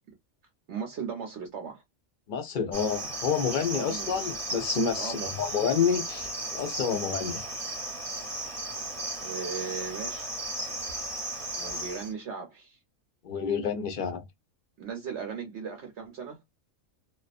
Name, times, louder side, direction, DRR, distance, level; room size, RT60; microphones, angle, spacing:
voice 1, 0.7-1.8 3.7-4.3 5.0-5.4 9.2-10.3 11.5-12.8 14.8-16.4, right 6 dB, 65° right, 0.9 m, -37 dB
voice 2, 2.3-7.4 13.2-14.2, left 6 dB, 55° left, 0.6 m, -29 dB
Cricket, 2.7-12.1, right 1 dB, 30° right, 0.8 m, -35 dB
2.4 x 2.3 x 2.4 m
omnidirectional pair, 1.3 m